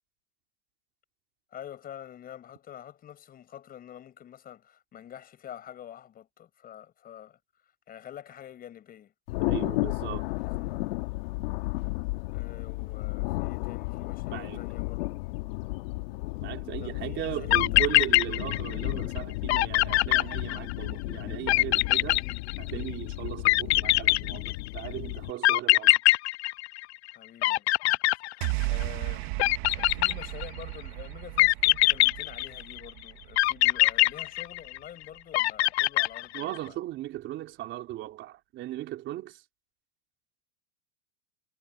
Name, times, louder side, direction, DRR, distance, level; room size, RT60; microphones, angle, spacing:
voice 1, 1.5-7.4 7.9-9.1 10.3-11.0 12.3-15.2 16.8-18.0 22.0-22.5 27.1-28.0 28.3-29.4 29.7-36.8, left 10 dB, 25° left, 6.1 m, -47 dB
Thunder, 9.3-25.3, left 22 dB, 65° left, 2.5 m, -33 dB
voice 2, 9.5-10.3 14.3-14.6 16.4-22.2 22.6-26.0 36.3-39.4, right 14 dB, 35° right, 4.1 m, -37 dB
sound 1, 17.2-17.3 17.5-18.9 19.2-19.3 19.5-20.9 21.5-22.9 23.4-24.8 25.4-27.1 27.4-28.8 29.4-30.6 31.4-32.8 33.4-34.9 35.3-36.6, left 18 dB, 80° left, 0.5 m, -23 dB
sound 2, 28.4-34.8, right 23 dB, 55° right, 2.0 m, -35 dB
supercardioid pair, 140°, 32 cm